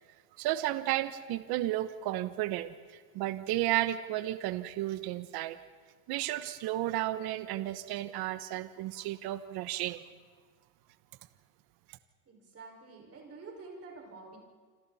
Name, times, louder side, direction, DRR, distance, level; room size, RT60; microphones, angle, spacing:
voice 1, 0.4-5.6 6.1-10.0, right 14 dB, 60° right, 11 dB, 1.2 m, -33 dB
voice 2, 12.3-14.4, right 3 dB, 35° right, -1 dB, 5.8 m, -48 dB
28.0 x 26.5 x 4.3 m, 1.5 s
supercardioid pair, 115°, 42 cm